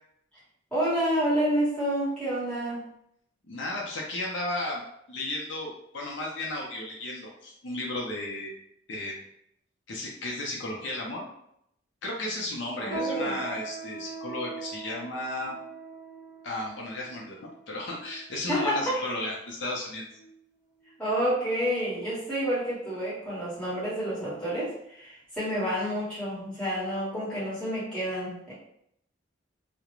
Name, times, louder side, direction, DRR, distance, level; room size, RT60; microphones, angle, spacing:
voice 1, 0.7-2.8 12.7-13.4 18.5-19.0 21.0-28.5, equal, 5° left, -11 dB, 1.2 m, -29 dB
voice 2, 3.5-8.5 8.9-9.2 9.9-11.3 12.0-15.5 16.4-20.1, left 2 dB, 70° left, -2 dB, 0.5 m, -34 dB
sound 1, 12.9-18.6 19.2-19.4 20.1-20.4 20.8-21.0 21.7-21.8, right 4 dB, 20° right, 0.8 m, -40 dB
2.3 x 2.0 x 3.0 m, 0.74 s
head